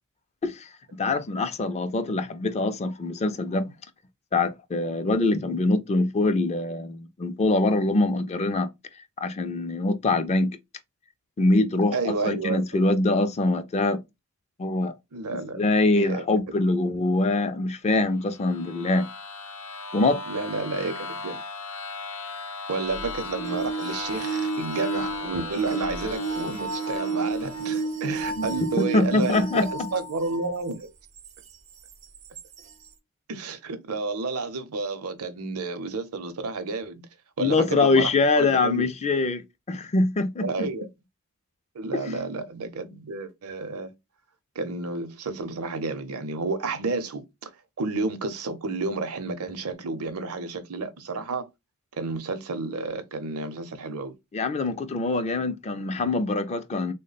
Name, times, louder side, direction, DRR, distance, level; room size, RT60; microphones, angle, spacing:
voice 1, 0.4-3.7 4.3-8.7 9.2-10.6 11.4-14.0 14.6-14.9 15.3-19.1 19.9-20.2 28.4-28.5 28.8-29.9 37.4-40.7 54.3-56.9, left 2 dB, 30° left, 0.4 m, -24 dB
voice 2, 11.9-12.8 15.1-15.7 16.0-16.2 16.5-16.7 20.3-21.4 22.7-30.9 33.3-37.0 37.4-38.9 40.4-40.9 41.7-43.9 44.6-47.5 47.8-51.5 52.0-54.1, right 3 dB, 75° right, 0.6 m, -31 dB
sound 1, 18.2-27.9, left 3 dB, 65° left, 0.7 m, -37 dB
sound 2, 22.9-30.5 31.2-31.3 32.4-32.5, right 4 dB, 30° right, 0.4 m, -31 dB
3.4 x 2.1 x 3.9 m
head